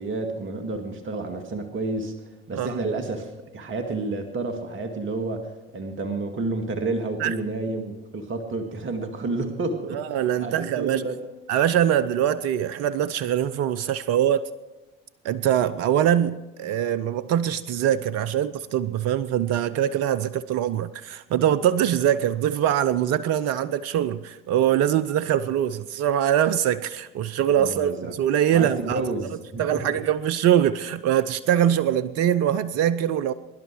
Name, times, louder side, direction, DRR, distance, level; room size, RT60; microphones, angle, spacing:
voice 1, 0.0-11.2 27.6-28.2 28.5-30.0, right 3 dB, 40° right, 6 dB, 2.1 m, -30 dB
voice 2, 9.9-11.0 11.5-14.4 15.2-29.0 29.6-33.3, right 10 dB, 60° right, 16 dB, 0.7 m, -23 dB
23.0 x 11.5 x 4.7 m, 1.1 s
hypercardioid pair, 60°, 29 cm